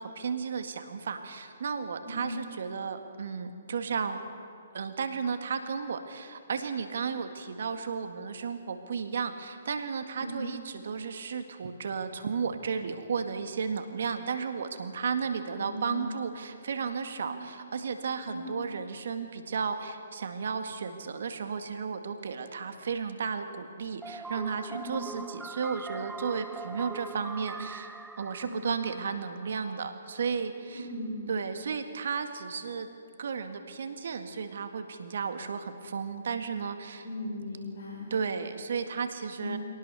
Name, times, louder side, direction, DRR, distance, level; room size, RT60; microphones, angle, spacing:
voice 1, 0.0-4.2 4.7-30.8 31.3-32.9 33.2-37.0 38.1-39.6, right 6 dB, 65° right, 8 dB, 1.9 m, -34 dB
voice 2, 15.5-16.1 17.2-17.4 18.3-18.5 24.7-25.1 28.4-28.7 30.7-31.2 37.0-38.1 39.4-39.6, equal, 55° left, -7 dB, 6.7 m, -38 dB
sound 1, 24.0-29.9, right 3 dB, 5° right, 0.5 m, -43 dB
23.5 x 18.0 x 6.9 m, 2.4 s
hypercardioid pair, 135°, 0 cm